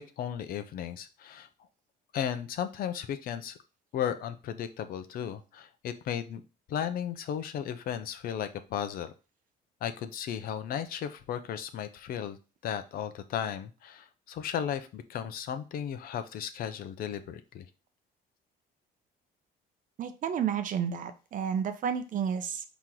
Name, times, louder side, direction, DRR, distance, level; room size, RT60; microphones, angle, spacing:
voice 1, 0.0-1.5 2.1-3.6 3.9-6.4 6.7-9.1 9.8-12.4 12.6-17.6, left 9 dB, 60° left, 10 dB, 0.6 m, -35 dB
voice 2, 20.0-22.6, right 8 dB, 50° right, 9 dB, 0.7 m, -31 dB
4.5 x 3.0 x 3.8 m, 0.33 s
cardioid pair, 110°, 17 cm